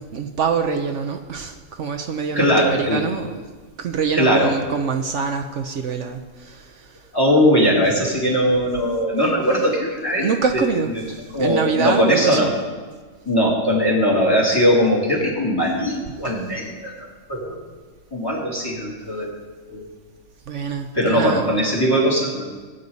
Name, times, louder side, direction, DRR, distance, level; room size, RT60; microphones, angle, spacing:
voice 1, 0.0-3.4 3.8-7.1 10.2-12.5 16.2-16.4 20.5-21.5, right 5 dB, 65° right, 5 dB, 1.1 m, -25 dB
voice 2, 2.3-3.0 4.1-4.5 7.1-10.3 11.3-12.5 13.2-16.9 17.3-17.6 18.1-19.3 19.7-19.8 20.9-22.5, equal, 15° left, -3 dB, 2.9 m, -19 dB
19.0 x 9.1 x 4.1 m, 1.4 s
omnidirectional pair, 1.4 m